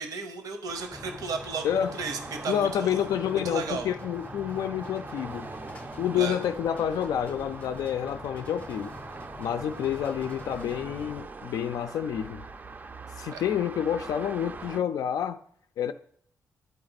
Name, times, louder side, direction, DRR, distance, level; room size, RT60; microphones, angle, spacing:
voice 1, 0.0-1.7 1.9-3.1 3.4-3.9 6.1-6.3 13.3-13.4, right 5 dB, 75° right, 0.9 m, -34 dB
sound 1, 0.7-14.8, right 3 dB, 30° right, 0.4 m, -42 dB
sound 2, 0.9-11.2, left 3 dB, 25° left, 0.6 m, -46 dB
voice 2, 1.6-2.0 2.5-5.5 6.0-8.9 9.4-12.5 13.2-15.4 15.8-15.9, left 9 dB, 80° left, 0.3 m, -29 dB
11.0 x 4.3 x 4.0 m
cardioid pair, 130°, 6 cm